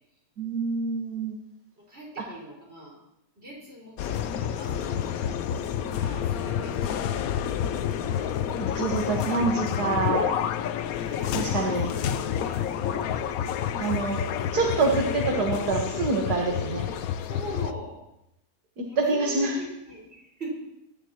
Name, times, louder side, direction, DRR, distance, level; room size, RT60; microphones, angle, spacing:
voice 1, 0.4-1.4 8.6-10.3 11.3-11.9 13.8-14.2 14.5-16.8 18.8-19.5, right 3 dB, 85° right, 0 dB, 2.1 m, -26 dB
voice 2, 1.8-3.0 3.4-5.4 5.9-7.6 11.0-12.0 12.4-12.6 12.9-13.1 17.3-18.0 18.9-20.5, right 1 dB, 40° right, -5 dB, 5.5 m, -41 dB
sound 1, 4.0-17.7, left 9 dB, 70° left, 1.0 m, -29 dB
23.5 x 11.5 x 3.0 m, 0.84 s
omnidirectional pair, 1.6 m